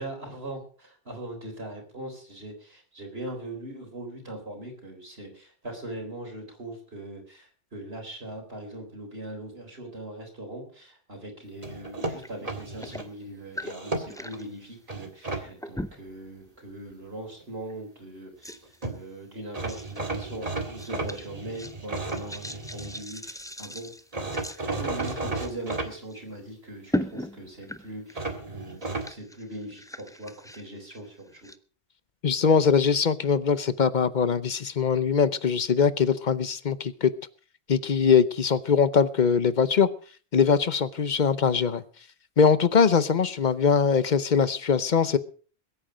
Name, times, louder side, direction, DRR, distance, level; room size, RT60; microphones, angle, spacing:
voice 1, 0.0-18.6 18.9-23.9 24.7-31.3, right 1 dB, 70° right, 4.2 m, -40 dB
sound 1, 11.6-13.1 13.6-14.4 14.9-15.4 18.5-18.6 18.8-19.0 19.5-23.0 24.1-25.9 28.1-29.1, right 3 dB, 35° right, 2.0 m, -33 dB
sound 2, 12.0-12.3 12.6-14.5 15.6-16.2 16.7-16.9 17.7-17.8 18.4-18.9 19.7-20.0 20.4-25.8 26.1-26.2 26.9-28.3 28.6-31.6, left 1 dB, 5° left, 0.4 m, -38 dB
voice 2, 32.2-37.1 37.7-39.9 40.3-41.8 42.4-45.2, left 6 dB, 50° left, 0.9 m, -22 dB
21.5 x 8.9 x 5.0 m
omnidirectional pair, 1.1 m